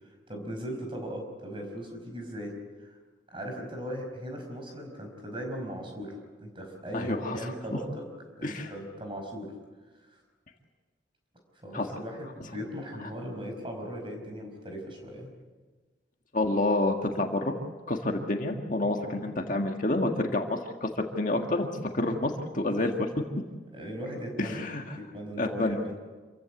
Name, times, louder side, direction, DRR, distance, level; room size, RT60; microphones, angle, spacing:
voice 1, 0.3-2.5 2.8-3.0 3.3-8.1 8.4-9.5 10.1-10.2 11.6-15.3 23.7-24.6 24.9-26.0, equal, 25° right, 2 dB, 5.2 m, -38 dB
voice 2, 6.9-7.4 8.4-8.7 11.7-11.9 16.3-17.5 17.9-21.7 21.9-23.1 24.4-24.8 25.4-25.7, left 2 dB, 45° left, 3 dB, 1.7 m, -28 dB
27.0 x 15.5 x 8.3 m, 1.3 s
head